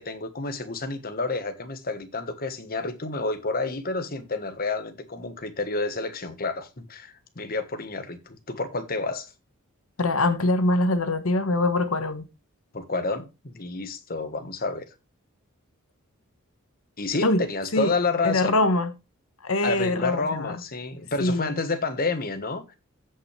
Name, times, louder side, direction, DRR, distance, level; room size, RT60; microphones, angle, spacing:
voice 1, 0.0-9.3 12.7-14.8 17.0-18.6 19.6-22.8, left 3 dB, 45° left, 1.3 m, -29 dB
voice 2, 10.0-12.3 17.2-17.4 17.7-17.9 18.2-18.9 19.4-20.6 21.2-21.6, left 2 dB, 70° left, 1.2 m, -23 dB
15.5 x 5.7 x 3.3 m
head